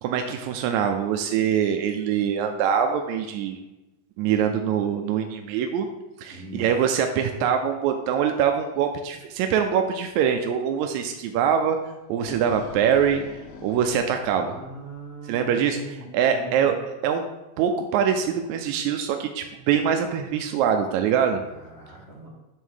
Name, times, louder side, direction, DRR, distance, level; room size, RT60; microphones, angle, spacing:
voice 1, 0.0-3.6 4.2-5.9 6.2-11.8 12.1-14.6 15.2-17.2 17.6-21.4, right 8 dB, 80° right, 5 dB, 1.8 m, -24 dB
voice 2, 6.3-6.7 14.4-16.8 21.5-22.3, right 2 dB, 30° right, -5 dB, 1.2 m, -41 dB
sound 1, 11.9-15.1, left 4 dB, 70° left, 2.3 m, -42 dB
8.8 x 3.6 x 6.3 m, 1.0 s
omnidirectional pair, 3.6 m